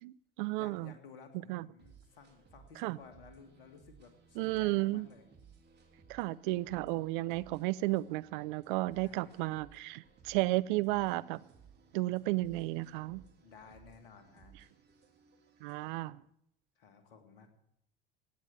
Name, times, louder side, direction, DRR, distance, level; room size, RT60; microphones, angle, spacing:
voice 1, 0.0-0.9 1.5-1.7 2.8-3.0 4.4-5.1 6.1-11.4 11.9-13.2 15.6-16.2, right 19 dB, 60° right, 17 dB, 0.6 m, -33 dB
voice 2, 0.6-5.2 8.9-9.6 13.4-14.5 16.8-17.5, left 5 dB, 70° left, 7 dB, 2.2 m, -56 dB
sound 1, 1.8-15.9, right 6 dB, 35° right, 3.2 m, -61 dB
18.0 x 8.4 x 6.9 m, 0.76 s
figure-of-eight pair, 70°, 29 cm